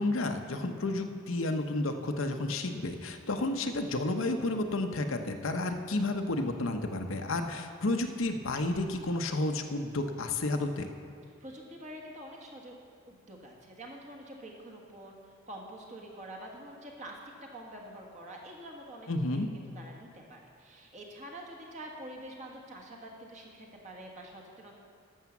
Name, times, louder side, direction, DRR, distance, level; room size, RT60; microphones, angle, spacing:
voice 1, 0.0-10.9 19.1-19.5, left 2 dB, 70° left, 6 dB, 0.8 m, -31 dB
voice 2, 11.4-12.8 13.1-24.8, right 1 dB, 35° right, 0 dB, 1.5 m, -46 dB
12.0 x 6.5 x 7.1 m, 2.3 s
head